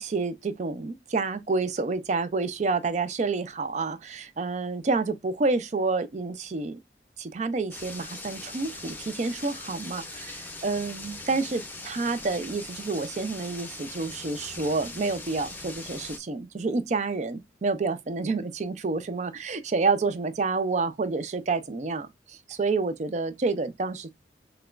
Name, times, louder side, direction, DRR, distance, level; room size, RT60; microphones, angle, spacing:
voice 1, 0.0-6.8 7.2-24.1, right 3 dB, 40° right, 0.4 m, -29 dB
sound 1, 7.7-16.2, left 2 dB, 10° left, 0.6 m, -41 dB
5.8 x 2.2 x 2.4 m
head